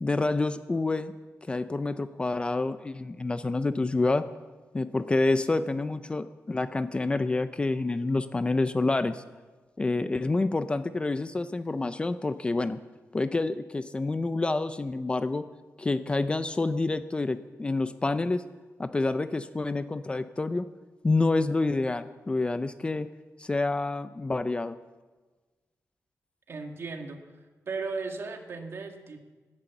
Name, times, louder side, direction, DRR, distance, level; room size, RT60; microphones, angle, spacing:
voice 1, 0.0-1.1 1.4-4.2 4.7-9.2 9.8-12.8 13.1-15.4 15.8-18.4 18.8-20.7 21.0-23.1 23.4-24.8, left 3 dB, 20° left, 11 dB, 0.5 m, -28 dB
voice 2, 26.5-27.2 27.7-29.3, right 4 dB, 50° right, 4 dB, 1.8 m, -36 dB
16.5 x 12.0 x 7.1 m, 1.3 s
wide cardioid pair, 160°, 6 cm